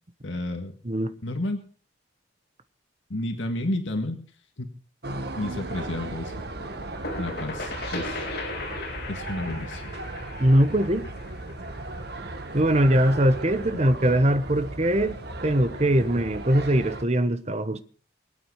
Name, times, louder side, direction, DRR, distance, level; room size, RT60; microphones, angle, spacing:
voice 1, 0.2-0.7 1.2-1.6 3.1-4.2 4.6-4.7 5.4-6.3 7.2-8.3 9.1-9.8, left 1 dB, 80° left, 1.8 m, -31 dB
voice 2, 0.8-1.2 10.4-11.1 12.5-17.8, right 1 dB, 35° right, 1.2 m, -22 dB
sound 1, 5.0-17.0, right 2 dB, 55° right, 1.6 m, -36 dB
sound 2, 6.6-12.2, left 2 dB, 55° left, 2.7 m, -37 dB
24.0 x 8.8 x 4.8 m
head